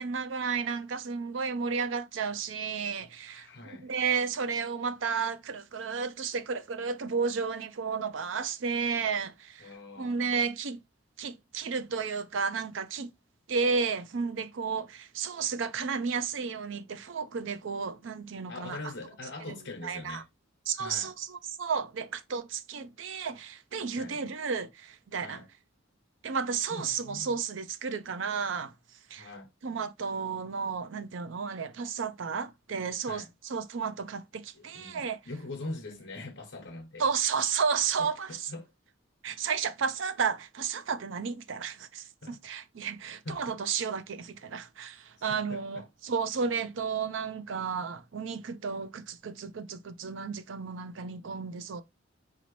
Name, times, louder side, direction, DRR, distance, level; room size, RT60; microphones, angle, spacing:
voice 1, 0.0-9.7 10.0-10.8 11.2-13.1 13.5-18.8 19.5-19.6 19.8-20.2 20.7-25.4 26.2-28.7 29.1-29.3 29.6-35.2 37.0-38.5 39.2-51.8, right 5 dB, 75° right, 0.5 m, -32 dB
voice 2, 3.3-3.9 9.6-10.2 18.5-20.3 20.8-21.1 24.0-24.2 25.2-25.5 26.7-27.4 29.2-29.5 33.1-33.3 34.5-37.1 38.0-38.7 42.2-42.4 43.2-43.6 45.2-45.9, left 2 dB, 70° left, 0.9 m, -43 dB
4.9 x 2.8 x 3.0 m
head